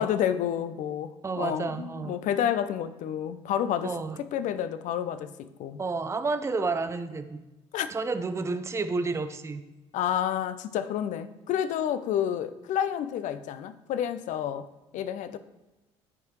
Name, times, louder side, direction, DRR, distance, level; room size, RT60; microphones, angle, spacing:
voice 1, 0.0-3.9 4.2-5.8 7.7-7.9 9.9-14.7 14.9-15.4, left 10 dB, 60° left, 0.6 m, -29 dB
voice 2, 1.2-2.2 3.8-4.2 5.8-7.4 7.9-9.6, right 3 dB, 20° right, 0.6 m, -30 dB
13.0 x 4.8 x 3.2 m
hypercardioid pair, 55°, 15 cm